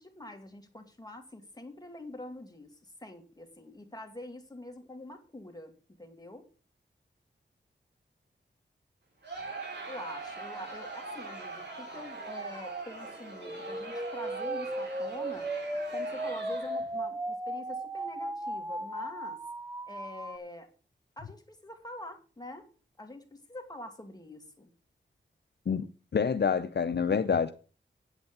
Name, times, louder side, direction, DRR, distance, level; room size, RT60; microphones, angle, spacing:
voice 1, 0.0-5.7 6.0-6.5 9.9-15.5 15.9-19.4 19.9-20.7 21.2-22.7 23.0-24.7, left 1 dB, 20° left, 2.5 m, -45 dB
Crowd, 9.2-16.9, right 3 dB, 65° right, 4.8 m, -41 dB
sound 1, 13.4-20.4, right 1 dB, 15° right, 0.9 m, -36 dB
voice 2, 26.1-27.5, left 6 dB, 60° left, 0.6 m, -27 dB
8.9 x 8.3 x 6.8 m
wide cardioid pair, 75°, 19 cm